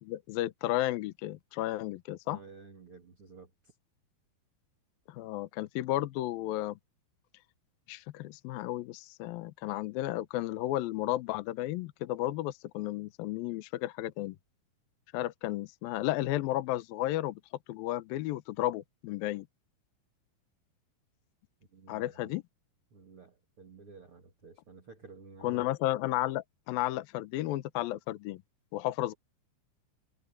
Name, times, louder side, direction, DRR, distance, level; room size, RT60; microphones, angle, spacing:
voice 1, 0.0-2.4 5.1-6.8 7.9-14.4 15.1-17.4 17.7-19.5 21.9-22.4 25.4-28.4 28.7-29.1, left 15 dB, 75° left, 2.3 m, -33 dB
voice 2, 2.3-3.7 21.7-22.4 22.9-25.6, right 4 dB, 40° right, 2.6 m, -52 dB
omnidirectional pair, 5.1 m